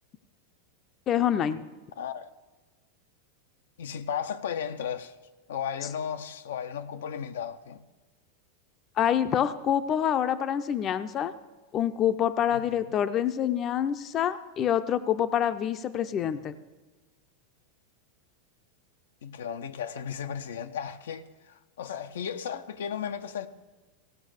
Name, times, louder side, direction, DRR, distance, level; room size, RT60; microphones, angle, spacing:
voice 1, 1.1-1.6 9.0-11.3 11.7-16.5, left 9 dB, 35° left, 0.6 m, -26 dB
voice 2, 2.0-2.3 3.8-5.1 5.5-7.8 12.5-12.8 19.2-23.5, left 8 dB, 90° left, 0.7 m, -35 dB
17.0 x 6.2 x 6.5 m
supercardioid pair, 130°, 0 cm